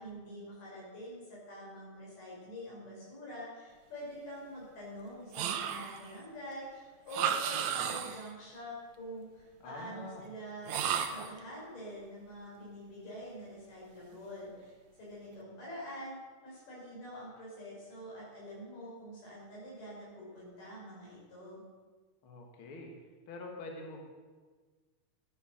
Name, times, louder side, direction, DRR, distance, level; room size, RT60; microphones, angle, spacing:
voice 1, 0.0-10.8 11.1-14.7 15.0-21.6, equal, 75° left, -5 dB, 6.8 m, -46 dB
sound 1, 5.3-6.1 7.1-8.3 10.7-11.4, right 8 dB, 70° right, 1.9 m, -33 dB
voice 2, 9.6-10.2 22.2-22.9 23.3-24.0, left 2 dB, 45° left, 1 dB, 2.1 m, -45 dB
14.0 x 9.8 x 6.5 m, 1.4 s
omnidirectional pair, 3.8 m